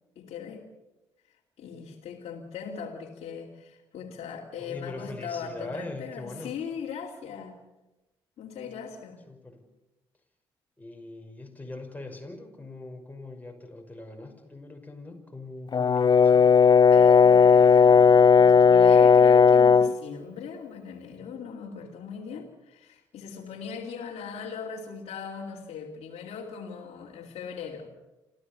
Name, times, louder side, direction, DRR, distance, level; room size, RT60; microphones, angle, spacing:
voice 1, 0.2-0.7 1.6-7.6 8.4-9.2 16.9-28.0, left 6 dB, 65° left, -3 dB, 2.7 m, -39 dB
voice 2, 4.6-6.5 9.3-9.6 10.8-16.6, left 2 dB, 15° left, 3 dB, 5.9 m, -42 dB
Brass instrument, 15.7-20.0, left 6 dB, 40° left, 0.6 m, -16 dB
27.0 x 15.0 x 7.0 m, 1.0 s
hypercardioid pair, 50°, 11 cm